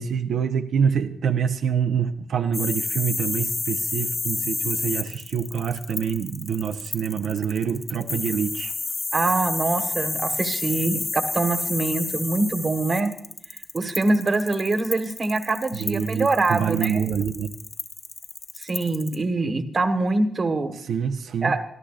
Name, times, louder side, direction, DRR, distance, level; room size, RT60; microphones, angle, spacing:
voice 1, 0.0-8.7 15.7-17.5 20.9-21.5, right 7 dB, 80° right, 6 dB, 0.8 m, -26 dB
sound 1, 2.5-19.1, left 3 dB, 30° left, 1.8 m, -30 dB
voice 2, 9.1-13.1 13.7-17.0 18.6-20.7 21.4-21.6, right 3 dB, 30° right, 7 dB, 1.3 m, -24 dB
24.5 x 14.0 x 2.5 m, 0.67 s
wide cardioid pair, 170°, 0 cm